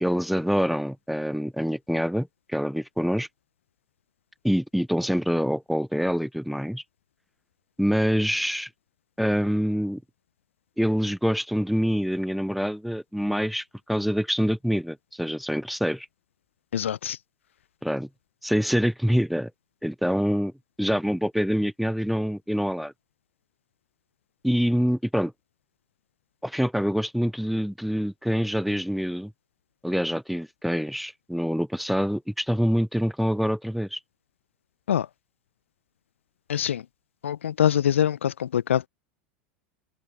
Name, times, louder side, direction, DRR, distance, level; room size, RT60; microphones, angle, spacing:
voice 1, 0.0-3.3 4.4-6.8 7.8-8.7 9.2-10.0 10.8-16.1 17.8-18.1 18.4-19.5 19.8-20.5 20.8-22.9 24.4-25.3 26.4-29.3 29.8-34.0, equal, ahead, 0.7 m, -25 dB
voice 2, 16.7-17.2 34.9-35.1 36.5-36.8 37.2-38.9, left 9 dB, 70° left, 0.8 m, -24 dB
open air
figure-of-eight pair, 85°, 7 cm